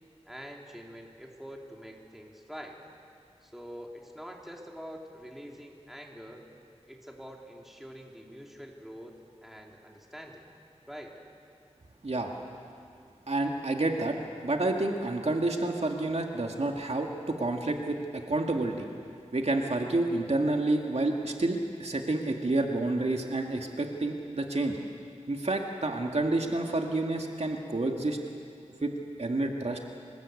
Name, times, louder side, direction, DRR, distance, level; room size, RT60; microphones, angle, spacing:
voice 1, 0.3-2.8 3.4-6.5 6.9-9.2 9.4-10.5 10.9-11.2, equal, ahead, 0 dB, 3.7 m, -45 dB
voice 2, 13.3-14.2 14.4-18.9 19.3-24.8 25.3-28.2 28.8-28.9 29.2-29.8, right 2 dB, 65° right, 2 dB, 2.0 m, -29 dB
26.0 x 20.0 x 8.5 m, 2.3 s
wide cardioid pair, 50°, 12 cm